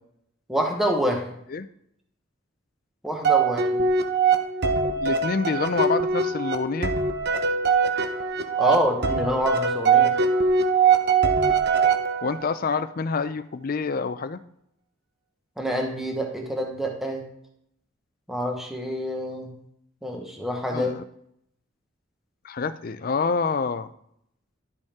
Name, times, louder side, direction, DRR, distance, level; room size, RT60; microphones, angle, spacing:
voice 1, 0.5-1.3 3.0-3.9 8.6-10.1 15.6-17.2 18.3-19.6 20.0-20.9, equal, ahead, 1 dB, 1.0 m, -27 dB
sound 1, 3.2-12.5, right 5 dB, 55° right, 0.8 m, -22 dB
voice 2, 5.0-6.9 12.2-14.4 20.7-21.0 22.4-23.9, left 4 dB, 45° left, 12 dB, 0.4 m, -27 dB
11.5 x 5.4 x 3.6 m, 0.73 s
head